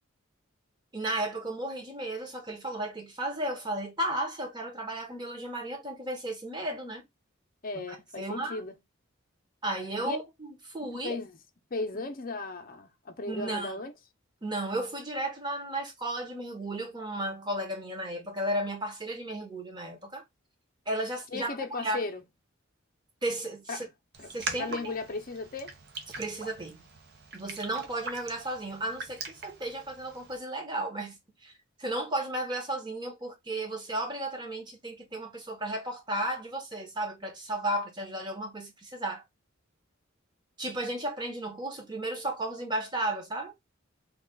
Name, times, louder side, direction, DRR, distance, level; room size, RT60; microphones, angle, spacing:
voice 1, 0.9-7.0 7.9-8.7 9.6-11.2 13.3-13.7 14.4-20.2 20.9-22.0 23.2-23.9 24.3-24.8 26.2-26.9 27.3-31.5 31.8-39.2 40.6-43.5, right 1 dB, 20° right, 1.0 m, -34 dB
voice 2, 7.6-8.7 10.0-10.2 10.9-11.3 11.7-13.9 21.3-22.2 23.7-23.9 24.2-24.3 24.6-25.7, left 3 dB, 45° left, 0.6 m, -36 dB
Raindrop, 24.1-30.4, right 3 dB, 50° right, 0.7 m, -42 dB
3.1 x 2.4 x 3.7 m
head